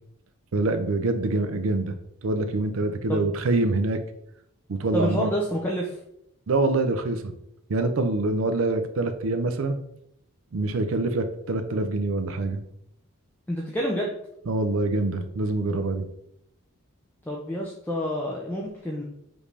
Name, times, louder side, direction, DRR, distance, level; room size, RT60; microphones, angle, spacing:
voice 1, 0.5-1.9 2.2-4.0 4.7-5.3 6.5-7.3 7.7-9.8 10.5-12.6 14.5-16.1, right 2 dB, 65° right, 9 dB, 0.5 m, -25 dB
voice 2, 4.9-6.0 13.5-14.1 17.2-19.0, equal, 10° left, -3 dB, 0.5 m, -28 dB
5.1 x 2.6 x 3.3 m, 0.76 s
head